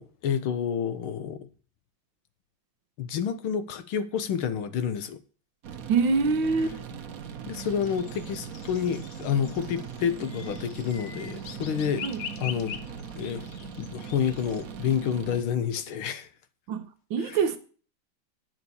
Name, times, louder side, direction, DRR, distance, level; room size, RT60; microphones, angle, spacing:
voice 1, 0.0-1.5 3.0-5.2 7.5-12.0 12.4-12.8 13.2-16.3 17.2-17.4, left 8 dB, 85° left, 1.8 m, -29 dB
sound 1, 5.6-15.4, right 7 dB, 50° right, 1.2 m, -40 dB
voice 2, 5.9-6.8 12.0-12.2 16.7-17.6, right 5 dB, 70° right, 1.8 m, -25 dB
sound 2, 7.5-14.6, left 7 dB, 60° left, 0.9 m, -44 dB
9.4 x 6.0 x 8.4 m
omnidirectional pair, 2.3 m